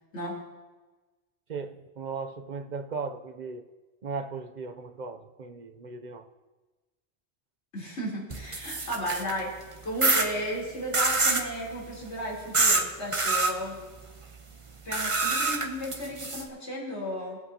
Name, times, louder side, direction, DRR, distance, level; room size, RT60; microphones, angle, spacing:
voice 1, 1.5-3.7 4.0-6.3, right 4 dB, 50° right, 8 dB, 0.7 m, -37 dB
voice 2, 7.7-9.5 9.8-13.8 14.8-17.4, equal, 85° left, -5 dB, 3.9 m, -34 dB
sound 1, 8.3-9.4 10.0-10.3 10.9-11.5 12.5-12.8 13.1-13.5 14.9-16.4, right 3 dB, 30° right, 0.9 m, -25 dB
21.5 x 8.3 x 2.8 m, 1.2 s
omnidirectional pair, 1.1 m